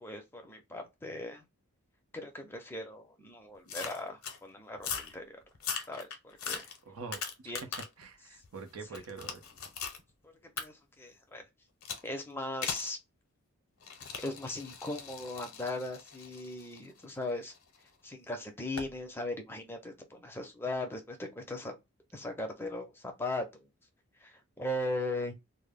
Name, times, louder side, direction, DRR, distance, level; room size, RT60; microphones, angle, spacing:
voice 1, 0.0-1.5 2.1-5.4 5.9-6.7 7.5-7.7 8.9-9.0 10.6-11.4 12.0-13.0 14.2-17.5 18.0-21.8 22.1-23.7 24.2-25.4, left 1 dB, 10° left, 0.5 m, -38 dB
sound 1, 3.7-4.4 4.8-5.1 5.5-8.0 8.4-10.0 10.6-10.7 11.8-12.1 12.6-12.9 13.8-17.8 18.8-18.9, left 6 dB, 70° left, 0.6 m, -40 dB
voice 2, 6.9-7.5 8.0-9.4, right 4 dB, 75° right, 0.6 m, -45 dB
2.1 x 2.0 x 3.3 m
head